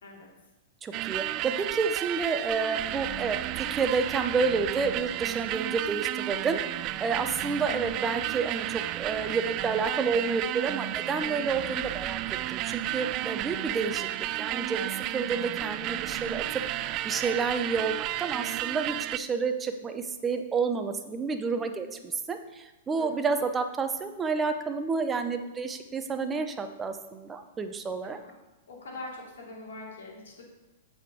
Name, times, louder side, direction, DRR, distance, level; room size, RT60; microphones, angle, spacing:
voice 1, 0.8-14.1 14.4-16.4 17.0-28.2, right 4 dB, 20° right, 7 dB, 0.8 m, -30 dB
sound 1, 0.9-19.2, right 15 dB, 40° right, 0.3 m, -32 dB
voice 2, 28.7-30.4, left 2 dB, 75° left, -2 dB, 2.8 m, -43 dB
7.6 x 5.2 x 6.0 m, 1.0 s
hypercardioid pair, 115°, 0 cm